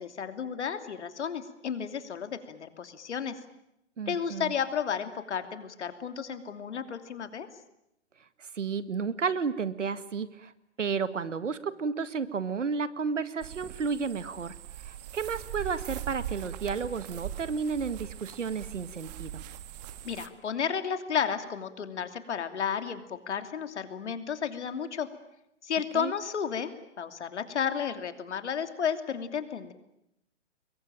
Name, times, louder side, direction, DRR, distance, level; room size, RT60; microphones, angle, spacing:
voice 1, 0.0-3.4 4.1-7.5 20.0-25.1 25.6-26.7 27.0-29.7, left 7 dB, 70° left, 9 dB, 2.9 m, -32 dB
voice 2, 4.0-4.5 8.4-10.5 10.8-14.6 14.8-19.4 25.9-26.1, right 5 dB, 85° right, 13 dB, 1.9 m, -32 dB
sound 1, 13.4-20.3, right 11 dB, 35° right, 1.7 m, -41 dB
27.5 x 22.0 x 9.1 m, 0.83 s
hypercardioid pair, 145°, 36 cm